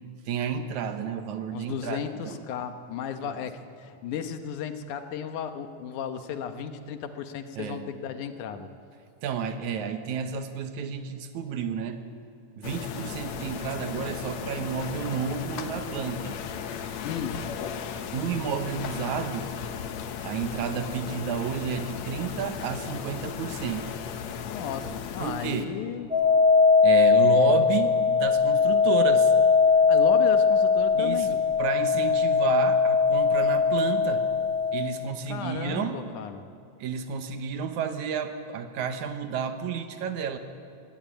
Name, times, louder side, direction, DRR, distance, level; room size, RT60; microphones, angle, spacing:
voice 1, 0.3-2.4 3.2-3.4 7.6-7.9 9.2-12.1 12.6-16.4 18.1-19.5 20.2-23.9 25.2-25.7 26.8-29.3 30.9-34.3 34.7-36.0 36.8-40.4, right 7 dB, 75° right, 8 dB, 2.5 m, -31 dB
voice 2, 1.5-8.7 17.0-17.4 24.5-26.1 29.9-31.4 35.3-36.5, left 8 dB, 85° left, 8 dB, 2.6 m, -34 dB
sound 1, 12.6-25.6, left 8 dB, 70° left, 2.2 m, -36 dB
sound 2, 26.1-34.7, left 5 dB, 30° right, 3.3 m, -20 dB
21.5 x 16.5 x 9.2 m, 2.4 s
omnidirectional pair, 3.4 m